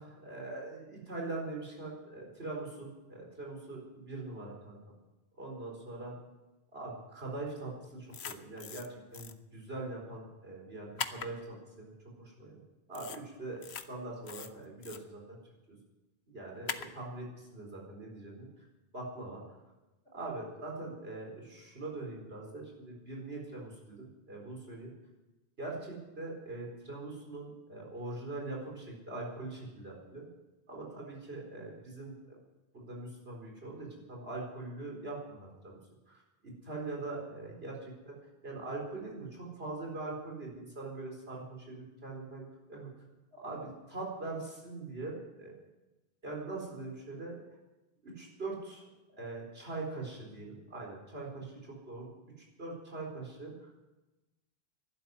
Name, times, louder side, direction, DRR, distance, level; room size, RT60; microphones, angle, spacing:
voice 1, 0.0-4.8 5.4-6.1 6.7-11.9 12.2-12.6 12.9-15.4 15.7-15.8 16.3-18.7 18.9-19.4 20.1-24.9 25.6-30.3 30.7-32.4 32.7-35.8 36.1-38.2 38.4-42.9 43.3-45.5 46.2-47.4 48.0-48.8 49.1-53.7, right 2 dB, 70° right, -2 dB, 4.6 m, -42 dB
sound 1, 8.1-8.9 9.1-9.3 11.0-11.3 12.9-13.2 13.6-13.8 14.3-15.0 16.7-16.9, left 7 dB, 85° left, 1.1 m, -40 dB
12.0 x 12.0 x 9.5 m, 1.1 s
omnidirectional pair, 1.1 m